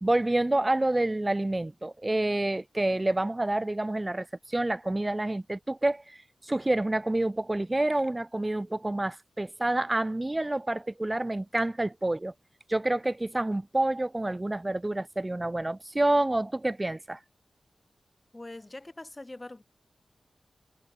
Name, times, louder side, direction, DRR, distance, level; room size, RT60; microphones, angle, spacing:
voice 1, 0.0-6.2 6.4-12.3 12.7-17.2, right 1 dB, 25° right, 0.8 m, -28 dB
voice 2, 18.3-19.6, left 2 dB, 30° left, 3.0 m, -43 dB
cardioid pair, 45°, 0 cm